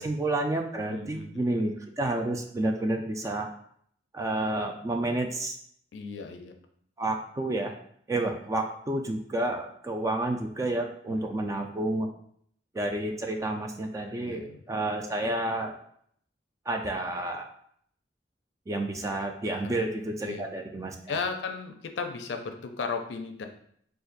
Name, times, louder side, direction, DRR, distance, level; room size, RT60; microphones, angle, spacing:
voice 1, 0.0-3.5 4.1-5.5 7.0-7.7 8.1-12.1 12.7-15.8 16.7-17.5 18.7-21.0, right 2 dB, 20° right, 3 dB, 0.3 m, -30 dB
voice 2, 0.9-1.6 5.9-6.5 8.1-8.3 11.1-11.4 14.1-14.6 19.5-19.9 20.2-20.5 21.1-23.5, left 4 dB, 90° left, 5 dB, 0.4 m, -36 dB
2.5 x 2.4 x 3.9 m, 0.65 s
head